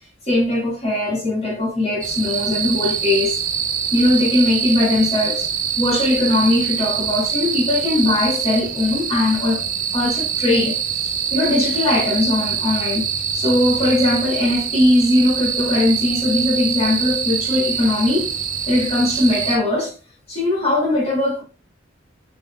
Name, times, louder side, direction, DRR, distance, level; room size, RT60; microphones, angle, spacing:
voice 1, 0.3-3.4 3.9-5.5 5.8-9.6 9.9-18.3 18.7-19.9 20.3-21.4, left 1 dB, 35° left, 2.5 m, -20 dB
sound 1, 2.0-19.6, right 7 dB, 45° right, 1.3 m, -24 dB
8.1 x 5.2 x 2.2 m
head